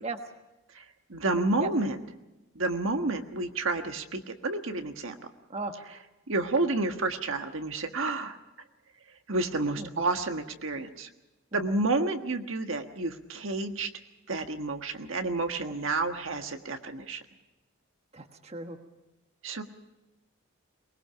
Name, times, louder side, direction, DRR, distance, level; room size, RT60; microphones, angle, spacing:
voice 1, 1.1-2.0 2.5-5.1 6.3-8.4 9.3-11.1 11.5-13.9 14.3-17.2 19.4-19.6, right 2 dB, 70° right, 6 dB, 1.5 m, -30 dB
voice 2, 9.8-10.1 11.5-11.8 15.6-15.8 18.1-18.8, right 2 dB, 30° right, 6 dB, 1.3 m, -37 dB
22.5 x 21.0 x 5.8 m, 1.0 s
head